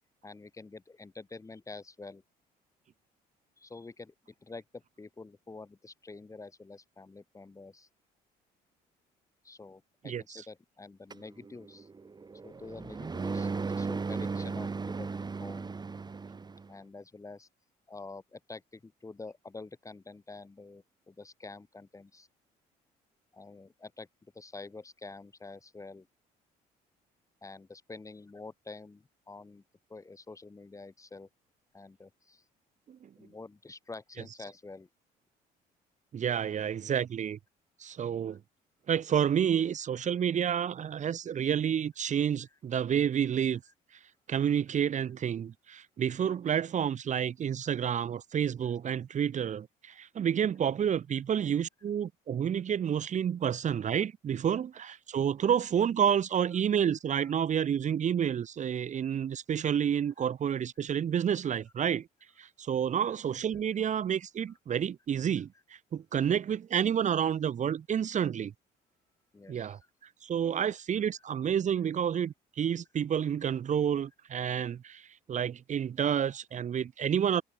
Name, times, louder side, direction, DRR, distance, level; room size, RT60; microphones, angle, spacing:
voice 1, 0.2-2.2 3.6-7.9 9.4-11.9 12.4-15.1 15.4-15.7 16.7-17.5 17.9-22.3 23.3-24.1 24.3-26.1 27.4-29.6 29.9-31.3 31.7-32.4 33.2-34.9 38.3-38.4 40.0-40.2 46.3-46.4 57.2-57.3 60.2-60.3 63.0-63.2 69.3-69.9 70.5-70.6 71.2-71.3, left 3 dB, 20° left, 4.4 m, -47 dB
voice 2, 10.0-10.4 32.9-33.1 36.1-37.4 37.8-38.4 38.9-43.6 44.3-62.1 62.4-68.5 69.5-69.8 70.2-77.4, right 8 dB, 45° right, 2.4 m, -29 dB
sound 1, 11.1-16.7, right 4 dB, 25° right, 5.3 m, -36 dB
cardioid pair, 110°, 17 cm